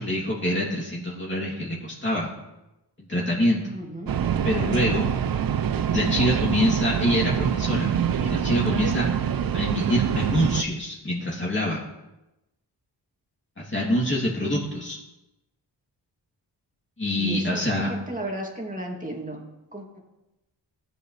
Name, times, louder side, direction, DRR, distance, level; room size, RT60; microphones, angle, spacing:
voice 1, 0.0-2.3 3.0-3.7 4.4-5.1 5.9-7.9 8.2-9.1 9.5-11.8 13.6-15.0 17.0-17.9, left 1 dB, 25° left, -5 dB, 2.7 m, -25 dB
voice 2, 3.7-4.2 17.2-20.0, right 1 dB, 20° right, 0 dB, 2.5 m, -35 dB
sound 1, 4.1-10.6, right 8 dB, 55° right, 0.7 m, -25 dB
16.5 x 8.1 x 3.2 m, 0.97 s
cardioid pair, 70°, 42 cm